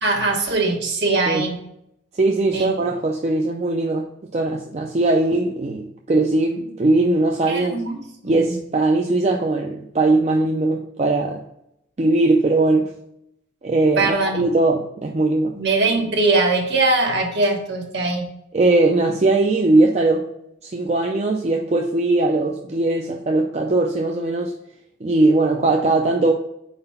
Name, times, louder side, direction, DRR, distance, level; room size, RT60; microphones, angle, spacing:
voice 1, 0.0-1.6 2.5-2.7 7.5-8.6 14.0-14.4 15.6-18.3, right 3 dB, 55° right, 0 dB, 1.2 m, -21 dB
voice 2, 2.1-7.8 8.2-11.4 12.0-12.9 13.6-15.5 18.5-20.3 20.6-24.5 25.0-26.3, right 2 dB, 35° right, 1 dB, 0.4 m, -20 dB
4.3 x 4.0 x 5.5 m, 0.78 s
head